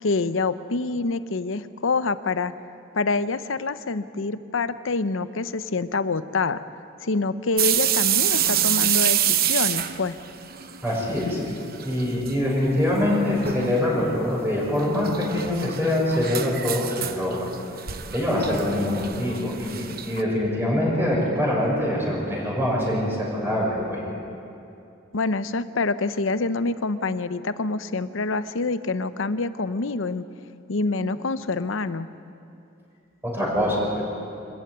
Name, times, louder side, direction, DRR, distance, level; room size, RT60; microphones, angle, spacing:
voice 1, 0.0-2.5 2.9-6.6 7.0-10.2 25.1-30.3 30.7-32.1, left 3 dB, 75° left, 13 dB, 0.8 m, -26 dB
sound 1, 7.6-11.4 11.6-12.3 12.7-12.8 13.4-13.8 14.8-20.2, right 10 dB, 50° right, 0.9 m, -26 dB
voice 2, 10.8-11.4 11.8-17.5 18.1-24.0 33.2-34.0, left 1 dB, 10° right, -4 dB, 6.2 m, -24 dB
25.0 x 14.5 x 9.4 m, 2.6 s
head